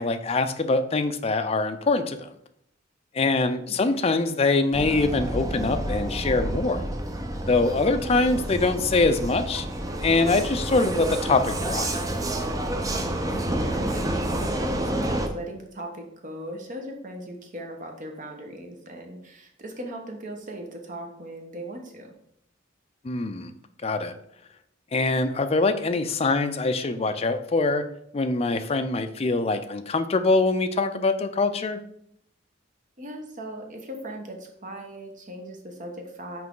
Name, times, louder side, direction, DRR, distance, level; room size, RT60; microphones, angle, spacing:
voice 1, 0.0-2.3 3.1-6.8 7.4-9.7 10.0-11.9 23.0-23.5 23.8-24.1 24.9-27.8 28.1-31.8, left 3 dB, 30° left, 9 dB, 0.4 m, -24 dB
Vehicle, 4.7-15.3, right 1 dB, 20° right, 0.6 m, -29 dB
voice 2, 13.2-22.1 33.0-36.5, right 1 dB, 45° right, 3 dB, 1.0 m, -39 dB
5.9 x 4.8 x 3.7 m, 0.72 s
head